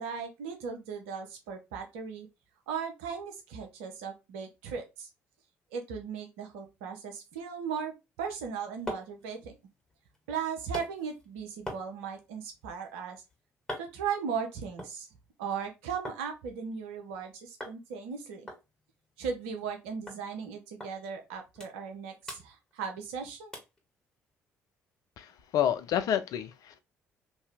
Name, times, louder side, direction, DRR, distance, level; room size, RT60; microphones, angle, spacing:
voice 1, 0.0-2.3 2.7-5.1 5.7-9.5 10.3-13.2 13.8-15.1 15.4-18.5 19.2-23.5, right 6 dB, 80° right, 0.7 m, -37 dB
sound 1, 8.3-16.2 16.6-17.2 17.6-17.8 18.1-18.2 18.5-19.8 20.1-20.2 20.8-20.9 21.3-22.0 22.2-23.1 23.5-23.8 24.3-24.4, left 1 dB, 10° left, 1.7 m, -45 dB
voice 2, 25.2-26.8, left 10 dB, 60° left, 0.5 m, -29 dB
2.8 x 2.7 x 3.3 m
hypercardioid pair, 50°, 7 cm